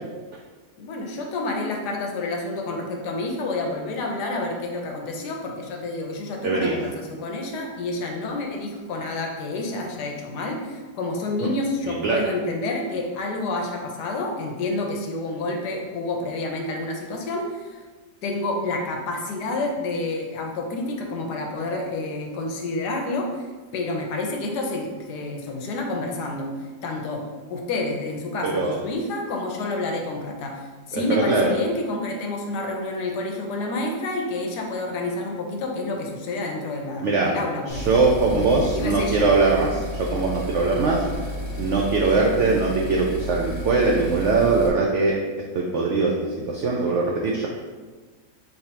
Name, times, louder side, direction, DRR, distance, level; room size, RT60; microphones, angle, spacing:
voice 1, 0.8-17.8 18.2-23.5 23.7-38.0 38.3-39.3, left 2 dB, 80° left, 2 dB, 1.2 m, -29 dB
voice 2, 6.4-6.8 11.4-11.5 11.9-12.2 28.4-28.8 30.9-31.5 37.0-37.4 37.7-39.8 40.1-41.0 41.6-45.2 45.5-46.1 46.5-47.5, right 3 dB, 80° right, -1 dB, 0.6 m, -21 dB
sound 1, 37.7-44.7, left 1 dB, 50° left, 0.7 m, -32 dB
4.6 x 3.3 x 2.8 m, 1.3 s
omnidirectional pair, 1.8 m